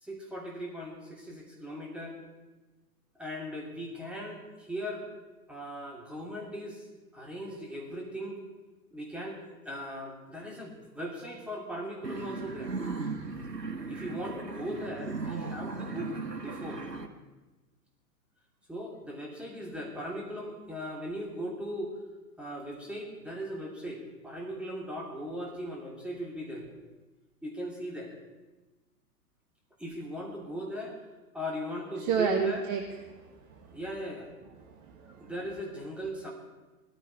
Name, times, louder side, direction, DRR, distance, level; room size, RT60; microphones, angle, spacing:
voice 1, 0.0-2.2 3.2-5.0 5.5-6.8 7.1-8.4 8.9-9.4 9.6-12.7 13.9-16.8 18.7-21.9 22.4-26.7 27.4-28.1 29.8-31.0 31.3-32.7 33.7-34.3 35.2-36.3, equal, ahead, -2 dB, 2.6 m, -38 dB
sound 1, 12.0-17.1, right 3 dB, 80° right, 1.5 m, -37 dB
voice 2, 32.0-32.8 33.1-33.8 34.6-35.3, right 6 dB, 25° right, 4 dB, 1.1 m, -32 dB
18.5 x 14.0 x 4.6 m, 1.2 s
figure-of-eight pair, 110°, 48 cm